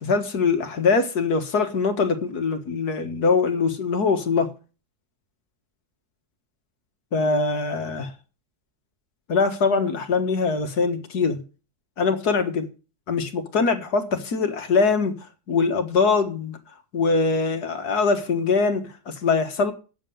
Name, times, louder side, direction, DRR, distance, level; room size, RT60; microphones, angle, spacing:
voice 1, 0.0-4.5 7.1-8.1 9.3-11.4 12.0-12.7 13.1-15.2 15.5-16.6 16.9-19.7, left 4 dB, 65° left, 2.1 m, -22 dB
9.0 x 7.6 x 9.1 m
omnidirectional pair, 1.8 m